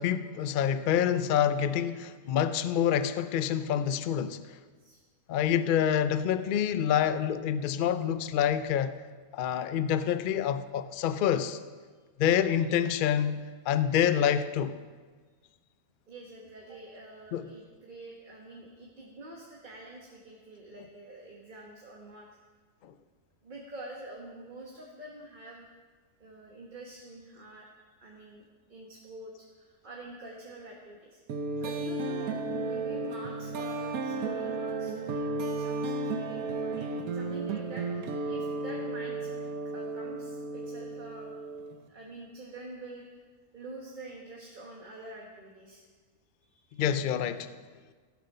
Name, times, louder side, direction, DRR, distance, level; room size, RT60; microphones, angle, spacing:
voice 1, 0.0-4.4 5.3-8.9 9.3-11.6 12.2-14.8 17.3-17.5 22.8-22.9 46.7-47.5, left 9 dB, 80° left, 0.4 m, -27 dB
voice 2, 4.6-5.0 16.1-22.3 23.4-25.7 26.2-27.7 28.0-28.4 28.7-31.2 31.6-39.4 39.7-41.3 41.9-43.1 43.5-45.9 46.6-46.8, right 2 dB, 35° right, 1.4 m, -46 dB
sound 1, 31.3-41.9, right 3 dB, 75° right, 1.3 m, -34 dB
16.0 x 7.9 x 5.4 m
omnidirectional pair, 1.5 m